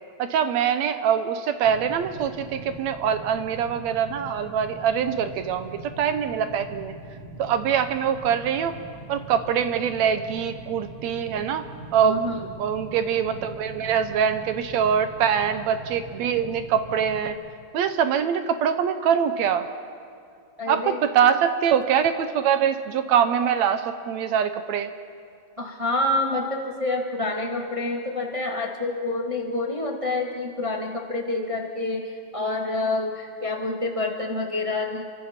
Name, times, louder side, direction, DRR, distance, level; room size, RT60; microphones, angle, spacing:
voice 1, 0.2-6.9 7.4-8.8 9.1-11.6 11.9-12.2 12.6-17.4 17.7-19.7 20.7-24.9, right 8 dB, 75° right, 9 dB, 2.0 m, -23 dB
sound 1, 1.6-17.3, right 2 dB, 85° left, 4.0 m, -42 dB
voice 2, 12.0-12.5 20.6-21.0 25.6-35.0, left 2 dB, 25° right, 0 dB, 0.6 m, -27 dB
29.5 x 25.0 x 4.4 m, 2.3 s
omnidirectional pair, 3.4 m